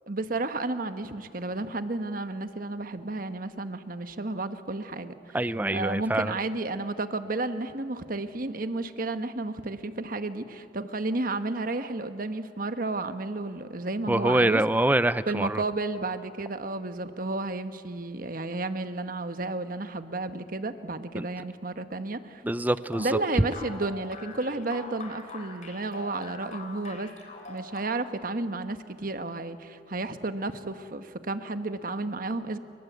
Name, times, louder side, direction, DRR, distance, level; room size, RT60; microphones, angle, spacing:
voice 1, 0.1-5.4 5.7-14.6 15.3-22.4 23.0-27.1 27.5-32.6, right 2 dB, 55° right, 10 dB, 1.3 m, -32 dB
voice 2, 5.3-6.3 14.1-15.6 21.1-21.3 22.4-23.1, right 1 dB, 10° right, 15 dB, 0.5 m, -25 dB
sound 1, 22.9-28.2, left 3 dB, 45° left, 4.1 m, -43 dB
29.5 x 24.0 x 8.1 m, 2.7 s
head